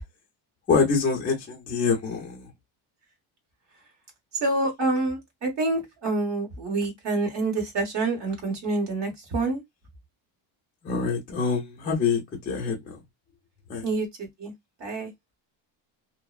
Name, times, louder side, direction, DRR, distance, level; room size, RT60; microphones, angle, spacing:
voice 1, 0.7-2.5 10.8-12.2 12.5-12.8 13.7-13.9, left 5 dB, 20° left, 0.4 m, -25 dB
voice 2, 4.4-9.6 13.8-14.5 14.8-15.1, right 2 dB, 35° right, 1.0 m, -27 dB
2.7 x 2.0 x 2.3 m
cardioid pair, 180°, 47 cm